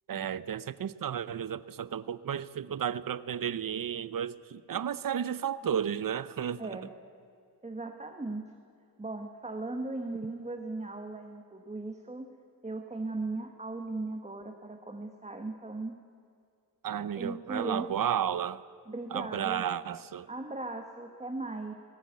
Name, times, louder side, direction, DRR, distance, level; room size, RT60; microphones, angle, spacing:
voice 1, 0.1-6.8 16.8-18.6 19.1-20.3, right 9 dB, 55° right, 0.7 m, -33 dB
voice 2, 6.6-6.9 7.6-8.5 9.0-12.3 12.6-15.9 17.2-17.9 18.9-19.6 20.3-21.7, right 2 dB, 15° right, 1.2 m, -37 dB
19.0 x 17.5 x 9.5 m
wide cardioid pair, 155°, 41 cm